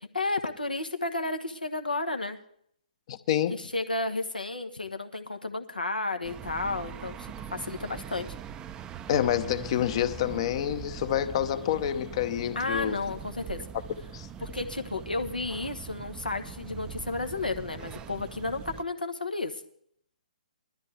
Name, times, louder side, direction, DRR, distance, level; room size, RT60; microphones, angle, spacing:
voice 1, 0.1-2.4 3.5-8.3 12.5-13.7 14.4-19.6, left 3 dB, 85° left, 1.3 m, -32 dB
voice 2, 3.1-3.6 9.1-13.0 14.1-14.3, left 10 dB, 40° left, 0.8 m, -28 dB
sound 1, 6.2-18.8, right 8 dB, 15° right, 0.5 m, -42 dB
20.0 x 13.0 x 3.4 m
figure-of-eight pair, 130°, 5 cm